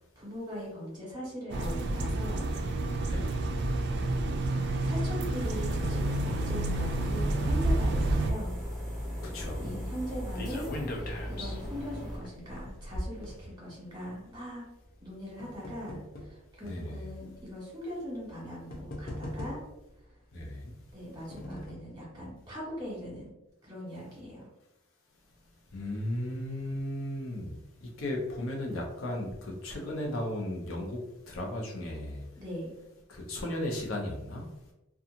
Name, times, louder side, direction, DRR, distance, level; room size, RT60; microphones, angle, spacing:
voice 1, 0.1-2.5 2.8-3.1 4.5-8.6 9.6-10.7 10.9-14.6 15.0-19.6 20.9-23.3 23.6-24.5 32.4-32.7, equal, 20° right, -6 dB, 1.4 m, -40 dB
sound 1, 1.5-8.3, right 2 dB, 55° right, 0.4 m, -29 dB
voice 2, 3.1-3.4 9.3-9.7 16.6-17.0 20.3-20.5 25.7-27.6 28.0-31.0 31.3-32.2 33.1-34.4, left 1 dB, 80° left, -1 dB, 0.7 m, -35 dB
sound 2, 5.4-12.2, equal, ahead, 1.2 m, -38 dB
sound 3, 8.5-14.0 14.8-16.4 17.2-17.3 18.3-18.4 18.7-19.9 20.8-21.9 22.4-22.5 22.7-22.8, left 1 dB, 45° left, 0.4 m, -41 dB
2.8 x 2.4 x 2.4 m, 0.94 s
head